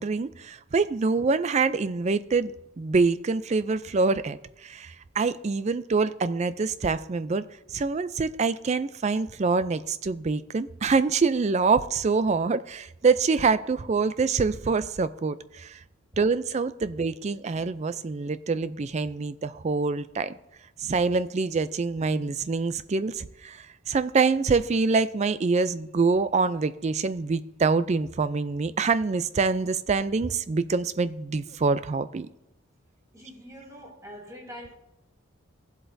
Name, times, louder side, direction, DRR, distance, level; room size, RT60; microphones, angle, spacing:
voice 1, 0.0-2.5 2.8-15.8 16.2-20.3 20.8-32.3, right 4 dB, 35° right, 0.3 m, -25 dB
voice 2, 33.1-34.7, equal, 15° right, 1.4 m, -44 dB
16.0 x 7.8 x 2.6 m
head